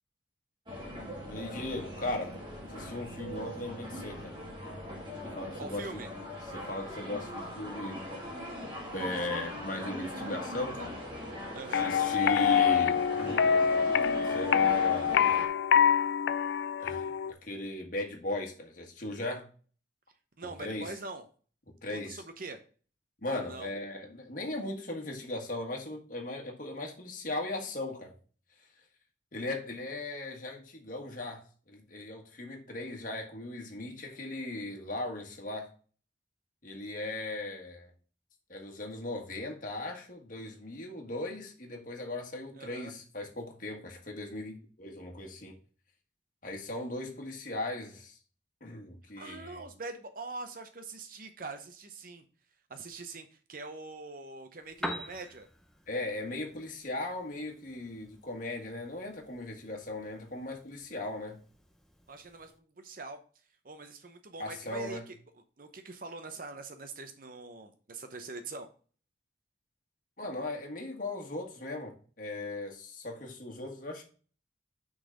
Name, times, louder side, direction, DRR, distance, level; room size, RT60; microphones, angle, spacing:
sound 1, 0.7-15.5, left 1 dB, 25° right, 1.6 m, -40 dB
voice 1, 1.3-2.3 2.7-4.3 5.2-6.0 6.5-8.0 8.9-10.9 11.8-13.5 14.2-15.2 16.8-17.1 17.4-19.5 20.6-20.9 21.8-22.2 23.2-28.1 29.3-35.7 36.6-37.9 38.5-45.6 46.4-48.2 48.6-49.6 55.9-61.4 64.4-65.0 70.2-74.0, left 2 dB, 45° left, 1.7 m, -38 dB
voice 2, 5.6-6.1 11.5-11.9 20.4-21.2 21.9-22.6 23.4-23.7 42.6-42.9 49.2-52.2 52.7-55.5 62.1-63.2 63.6-65.2 65.6-68.7, right 3 dB, 50° right, 0.8 m, -43 dB
sound 2, 11.7-17.3, left 7 dB, 65° left, 0.3 m, -25 dB
Piano, 54.6-62.6, equal, 5° left, 0.6 m, -46 dB
6.4 x 4.0 x 5.0 m
head